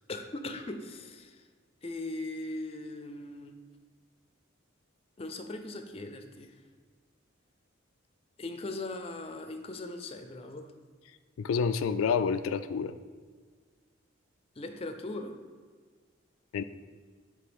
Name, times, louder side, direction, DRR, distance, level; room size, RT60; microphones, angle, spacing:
voice 1, 0.1-1.5 1.8-3.5 5.2-6.6 8.4-10.7 14.6-15.3, left 2 dB, 30° left, 6 dB, 0.5 m, -39 dB
voice 2, 11.4-12.9 16.5-16.6, left 6 dB, 85° left, 10 dB, 0.3 m, -28 dB
7.7 x 3.3 x 5.1 m, 1.5 s
head